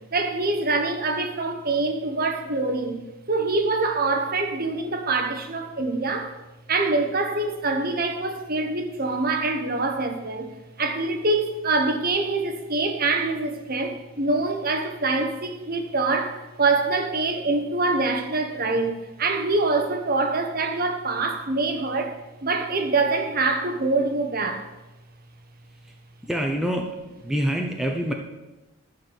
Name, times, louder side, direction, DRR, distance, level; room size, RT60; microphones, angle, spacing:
voice 1, 0.1-3.0 3.3-6.4 6.7-10.5 10.8-22.1 22.4-24.7, right 3 dB, 40° right, 1.0 m, -25 dB
voice 2, 26.2-27.0 27.2-28.1, equal, ahead, 0.6 m, -26 dB
11.5 x 4.7 x 7.8 m
head